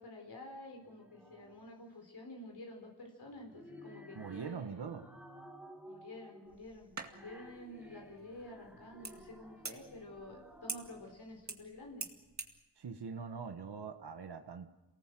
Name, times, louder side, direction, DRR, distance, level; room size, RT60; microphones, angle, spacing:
voice 1, 0.0-4.9 5.8-12.1, left 1 dB, 70° left, 2 dB, 4.5 m, -50 dB
sound 1, 0.7-1.7 3.2-11.3, equal, 5° right, 4.5 m, -55 dB
voice 2, 4.1-5.1 12.8-14.7, right 6 dB, 80° right, 6 dB, 1.5 m, -43 dB
sound 2, 6.5-12.6, right 4 dB, 45° right, 2.1 m, -48 dB
27.5 x 19.0 x 7.7 m, 1.0 s
wide cardioid pair, 95°, 40 cm